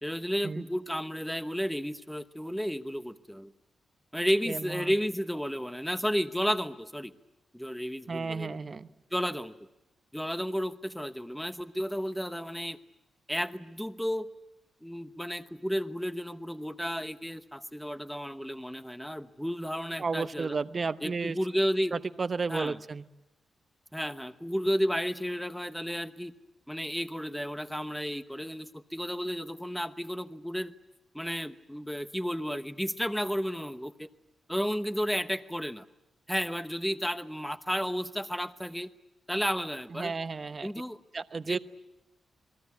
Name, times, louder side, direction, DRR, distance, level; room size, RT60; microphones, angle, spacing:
voice 1, 0.0-3.5 4.1-7.1 7.5-8.5 9.1-9.5 10.1-12.8 13.3-14.3 14.8-20.6 21.0-22.0 22.5-22.8 23.9-26.3 26.7-30.7 31.1-34.1 34.5-35.8 36.3-38.9 39.3-40.1 40.6-41.0 41.5-41.6, equal, ahead, 11 dB, 1.0 m, -32 dB
voice 2, 4.5-4.9 8.1-8.9 20.0-21.4 21.9-23.0 39.9-40.7 41.1-41.6, right 4 dB, 35° right, 12 dB, 0.9 m, -33 dB
28.0 x 22.0 x 8.3 m, 0.94 s
wide cardioid pair, 130°, 0 cm